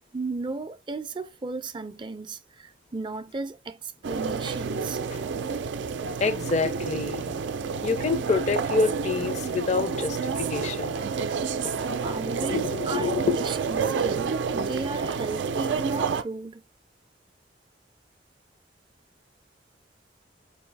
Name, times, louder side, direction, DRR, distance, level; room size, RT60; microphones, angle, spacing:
voice 1, 0.1-5.0 11.9-16.6, right 3 dB, 25° right, 0.4 m, -35 dB
sound 1, 4.0-16.2, right 5 dB, 85° right, 0.4 m, -29 dB
voice 2, 6.2-7.3 7.8-11.0 11.6-11.7 12.4-13.4, left 4 dB, 40° left, 0.4 m, -27 dB
4.7 x 2.6 x 3.3 m
head